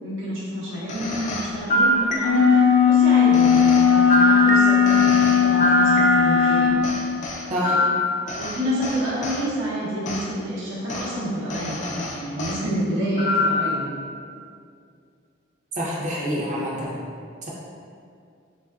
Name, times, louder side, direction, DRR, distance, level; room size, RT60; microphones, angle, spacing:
voice 1, 0.0-6.7 7.7-7.8 8.3-13.9, equal, 80° right, -8 dB, 0.9 m, -28 dB
sound 1, 0.9-2.7 3.3-6.5 6.8-9.4 10.0-10.3 10.9-11.1 11.5-12.6 13.2-13.8, equal, 40° left, 0.3 m, -24 dB
sound 2, 2.2-6.8, left 7 dB, 85° left, 0.6 m, -17 dB
voice 2, 15.8-17.0 17.4-17.5, equal, 40° right, -5 dB, 0.6 m, -27 dB
3.3 x 2.5 x 2.3 m, 2.3 s
head